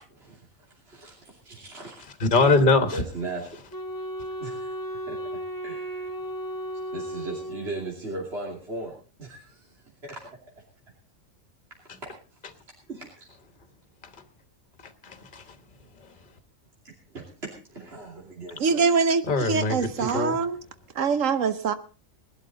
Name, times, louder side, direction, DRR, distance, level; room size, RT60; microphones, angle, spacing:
voice 1, 0.1-2.2 2.9-3.5 4.4-4.7 5.1-5.2 5.6-6.1 6.9-10.2 11.9-12.1 12.9-13.3 16.8-18.8, right 2 dB, 50° right, 3.0 m, -38 dB
voice 2, 2.2-3.0 15.0-15.5 19.2-20.3, left 3 dB, 40° left, 1.5 m, -22 dB
Wind instrument woodwind instrument, 3.7-8.2, equal, 15° left, 1.4 m, -35 dB
voice 3, 18.6-20.6 21.0-21.7, right 5 dB, 75° right, 1.3 m, -24 dB
20.0 x 12.0 x 4.0 m
omnidirectional pair, 1.4 m